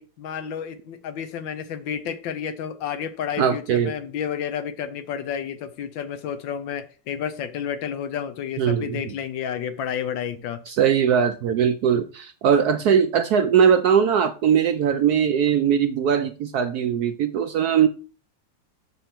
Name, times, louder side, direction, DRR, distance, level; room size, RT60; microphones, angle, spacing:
voice 1, 0.0-10.6, left 8 dB, 80° left, 1.5 m, -31 dB
voice 2, 3.4-3.9 8.6-9.0 10.7-17.9, right 8 dB, 70° right, 1.0 m, -20 dB
6.7 x 6.3 x 4.4 m
omnidirectional pair, 2.1 m